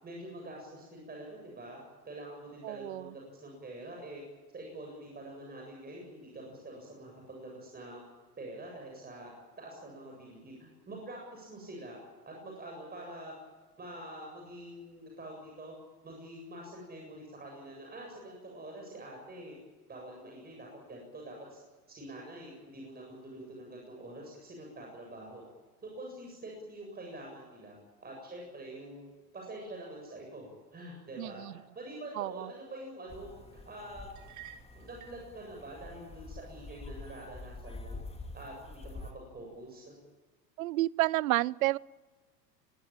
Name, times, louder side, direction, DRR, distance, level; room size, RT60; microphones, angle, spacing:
voice 1, 0.0-4.2 4.5-8.0 8.4-9.3 9.6-13.3 13.8-15.7 16.0-19.6 19.9-21.6 21.9-25.4 25.8-29.1 29.3-34.1 34.7-38.0 38.3-39.9, right 1 dB, 20° right, 0 dB, 7.7 m, -46 dB
voice 2, 2.6-3.1 31.2-31.5 32.2-32.5 40.6-41.8, right 17 dB, 55° right, 25 dB, 0.7 m, -30 dB
sound 1, 33.1-39.1, left 2 dB, 10° left, 2.5 m, -47 dB
sound 2, 34.2-35.3, right 10 dB, 35° right, 3.5 m, -51 dB
24.5 x 21.0 x 8.8 m, 1.3 s
figure-of-eight pair, 90°, 50 cm